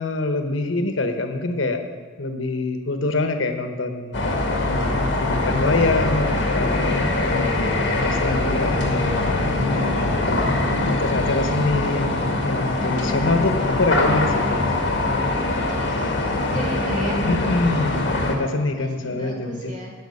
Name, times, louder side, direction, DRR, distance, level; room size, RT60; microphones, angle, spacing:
voice 1, 0.0-1.8 2.2-4.2 4.6-7.1 8.0-15.2 17.3-19.7, left 2 dB, 90° left, 6 dB, 1.1 m, -25 dB
sound 1, 4.1-18.3, left 2 dB, 65° left, 1.9 m, -22 dB
voice 2, 15.0-17.2 18.8-19.9, equal, 40° right, -2 dB, 2.5 m, -37 dB
11.5 x 5.0 x 8.4 m, 1.5 s
head